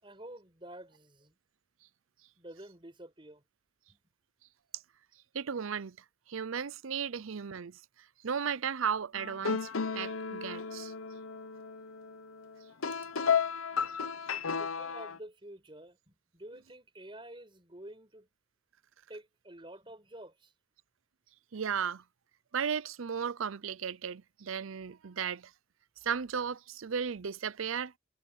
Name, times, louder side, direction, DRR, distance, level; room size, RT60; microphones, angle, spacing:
voice 1, 0.0-1.4 2.4-3.4 3.9-4.0 14.6-18.3 19.1-20.5, right 1 dB, 25° right, 5.2 m, -49 dB
voice 2, 5.3-6.0 6.3-7.8 8.2-10.9 21.5-22.0 22.5-25.5 26.0-27.9, right 7 dB, 80° right, 0.6 m, -35 dB
sound 1, 9.1-15.2, left 6 dB, 90° left, 0.9 m, -34 dB
head